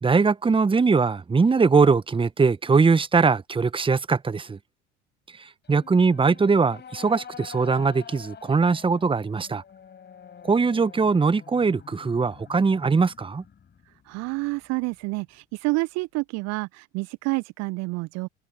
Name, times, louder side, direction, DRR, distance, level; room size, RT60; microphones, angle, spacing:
voice 1, 0.0-4.6 5.4-9.6 10.4-13.4, right 4 dB, 15° right, 1.5 m, -21 dB
sound 1, 5.6-15.0, left 7 dB, 30° left, 7.7 m, -47 dB
voice 2, 14.1-18.3, right 25 dB, 45° right, 1.0 m, -29 dB
figure-of-eight pair, 70°, 35 cm